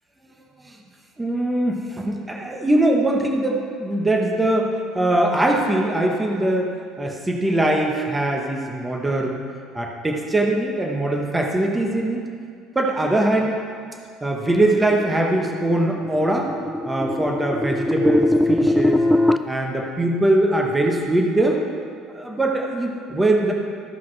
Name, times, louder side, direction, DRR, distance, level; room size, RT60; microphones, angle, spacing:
voice 1, 1.2-4.7 4.9-9.4 9.7-12.2 12.7-13.6 14.2-16.5 16.8-19.1 19.5-21.6 22.1-23.5, right 1 dB, 15° right, 1 dB, 1.1 m, -21 dB
sound 1, 14.6-19.4, left 1 dB, 5° left, 0.4 m, -21 dB
14.5 x 5.4 x 3.3 m, 2.2 s
supercardioid pair, 80°, 0 cm